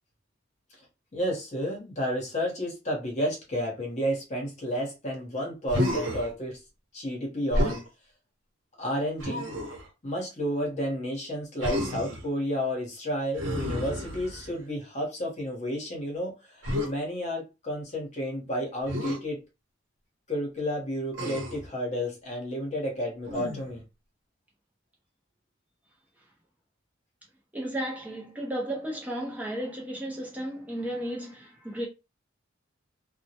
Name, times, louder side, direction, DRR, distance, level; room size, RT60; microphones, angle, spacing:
voice 1, 1.1-6.6 6.9-7.8 8.8-9.5 10.0-19.4 20.3-23.8, equal, 35° left, 0.9 m, -31 dB
Human voice, 5.7-6.3 7.5-7.9 9.2-9.9 11.6-12.3 13.4-14.6 16.6-16.9 18.9-19.2 21.1-21.7 23.3-23.8, left 1 dB, 70° right, 0.8 m, -30 dB
voice 2, 27.5-31.9, right 1 dB, 10° right, 0.5 m, -34 dB
2.2 x 2.0 x 2.8 m
head